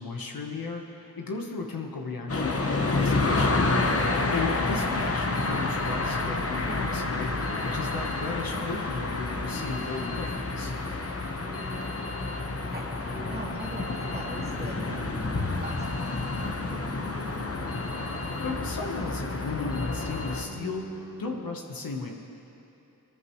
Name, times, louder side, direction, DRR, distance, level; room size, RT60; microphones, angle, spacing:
voice 1, 0.0-3.7 4.3-10.7 18.4-22.1, left 3 dB, 70° left, 1 dB, 1.4 m, -35 dB
sound 1, 2.3-20.4, left 3 dB, 40° left, 1.1 m, -29 dB
sound 2, 3.6-21.5, right 1 dB, 5° right, 2.8 m, -49 dB
voice 2, 12.7-15.1 15.6-17.0, right 2 dB, 25° right, -3 dB, 2.7 m, -43 dB
19.5 x 13.5 x 3.2 m, 2.9 s
cardioid pair, 45°, 36 cm